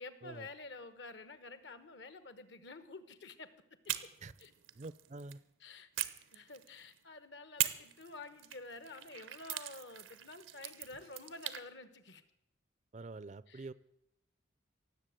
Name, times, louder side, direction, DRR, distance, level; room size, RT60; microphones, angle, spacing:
voice 1, 0.0-3.5 3.8-3.9 4.4-4.5 5.6-5.9 6.3-12.2 13.5-13.7, left 3 dB, 65° left, 13 dB, 1.1 m, -50 dB
sound 1, 3.9-5.4 6.0-7.0 7.6-11.6, right 13 dB, 90° right, 0.9 m, -41 dB
voice 2, 4.8-5.4 12.9-13.7, right 3 dB, 35° right, 18 dB, 0.4 m, -46 dB
17.5 x 8.0 x 7.7 m, 0.83 s
head